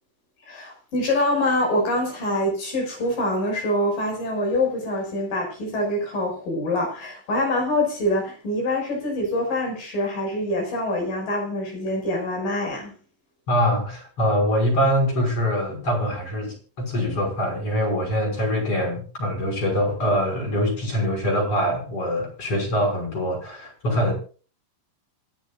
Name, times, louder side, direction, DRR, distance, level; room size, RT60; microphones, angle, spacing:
voice 1, 0.5-12.9, left 1 dB, 80° left, 7.7 m, -25 dB
voice 2, 13.5-24.1, equal, 40° left, 7.1 m, -24 dB
27.0 x 9.2 x 2.5 m
omnidirectional pair, 3.9 m